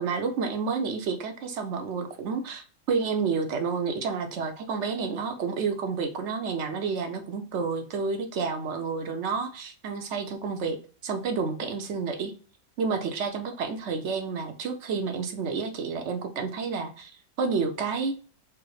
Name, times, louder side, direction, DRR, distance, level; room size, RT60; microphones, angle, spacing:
voice 1, 0.0-10.8 11.0-12.3 12.8-17.1 17.4-18.1, right 5 dB, 55° right, 6 dB, 0.9 m, -30 dB
4.8 x 2.1 x 4.7 m, 0.39 s
omnidirectional pair, 1.8 m